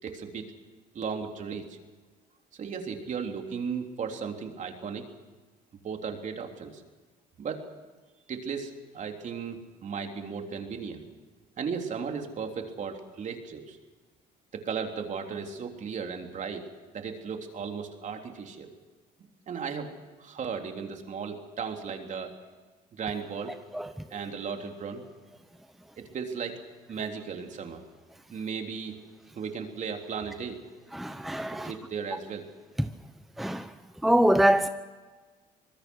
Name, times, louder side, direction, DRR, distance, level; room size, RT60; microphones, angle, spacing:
voice 1, 0.0-0.5 0.9-1.8 2.5-5.0 5.8-6.8 7.4-7.6 8.3-11.0 11.6-13.8 14.5-16.6 16.9-18.7 19.5-19.9 20.2-22.3 23.0-23.5 24.1-25.0 26.0-26.6 26.9-27.8 28.3-29.0 29.3-30.6 31.6-32.5, right 6 dB, 45° right, 3.4 m, -35 dB
voice 2, 30.9-31.7 33.4-33.7 34.0-34.7, right 1 dB, ahead, 0.8 m, -23 dB
25.5 x 20.5 x 6.3 m
cardioid pair, 110°, 17 cm